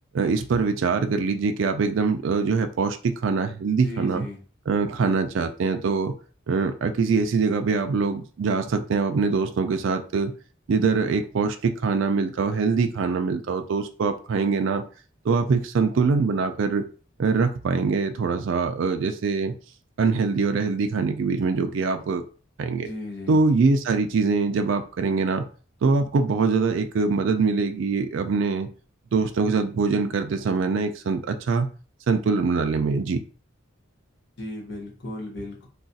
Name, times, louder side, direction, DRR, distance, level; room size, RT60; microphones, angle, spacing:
voice 1, 0.1-4.3 4.7-6.1 6.5-10.3 10.7-14.8 15.2-16.8 17.2-19.6 20.0-22.2 22.6-22.9 23.3-25.5 25.8-28.7 29.1-31.7 32.1-33.2, right 4 dB, 65° right, 7 dB, 0.4 m, -23 dB
voice 2, 3.8-4.4 22.8-23.4 34.4-35.7, left 1 dB, 60° left, -1 dB, 1.1 m, -36 dB
2.4 x 2.3 x 3.9 m, 0.37 s
head